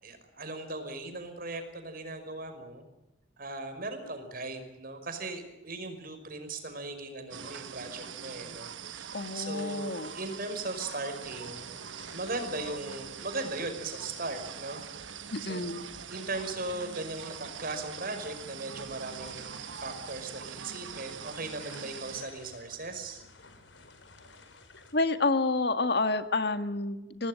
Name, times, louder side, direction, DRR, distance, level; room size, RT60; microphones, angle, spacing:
voice 1, 0.0-2.9 3.4-11.8 12.1-15.2 15.5-15.7 16.1-23.2, right 2 dB, 50° right, 7 dB, 5.4 m, -38 dB
sound 1, 7.3-22.2, right 7 dB, 90° right, 1.1 m, -43 dB
voice 2, 9.1-10.1 15.3-15.9 24.9-27.3, left 3 dB, 60° left, 9 dB, 1.8 m, -29 dB
sound 2, 11.2-24.9, left 3 dB, 85° left, 4.8 m, -55 dB
25.5 x 18.5 x 9.1 m, 0.97 s
head